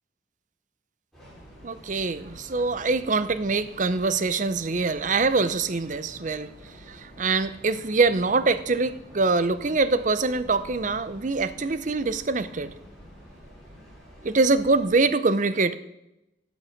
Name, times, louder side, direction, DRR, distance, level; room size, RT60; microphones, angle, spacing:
Train, 1.1-15.0, equal, ahead, 4.3 m, -48 dB
voice 1, 1.6-6.5 6.9-12.7 14.2-15.7, right 3 dB, 40° right, 14 dB, 0.6 m, -24 dB
16.5 x 6.4 x 5.9 m, 0.92 s
head